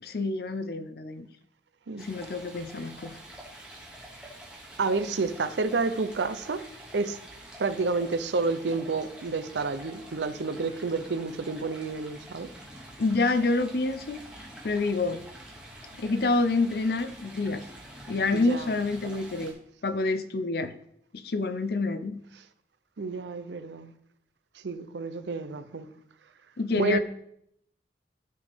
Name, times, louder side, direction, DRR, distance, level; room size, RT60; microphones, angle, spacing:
voice 1, 0.0-1.3 2.0-3.2 13.0-14.2 14.6-15.2 16.0-17.6 18.1-19.6 19.8-20.7 21.1-22.3 26.6-27.0, left 3 dB, 60° left, 0.5 m, -27 dB
Stream, 2.0-19.5, right 1 dB, 5° right, 1.2 m, -47 dB
voice 2, 4.8-6.6 6.9-7.2 7.6-12.5 18.3-18.7 23.0-23.9 24.6-25.9 26.7-27.0, right 3 dB, 80° right, 0.6 m, -29 dB
12.0 x 4.2 x 3.5 m
head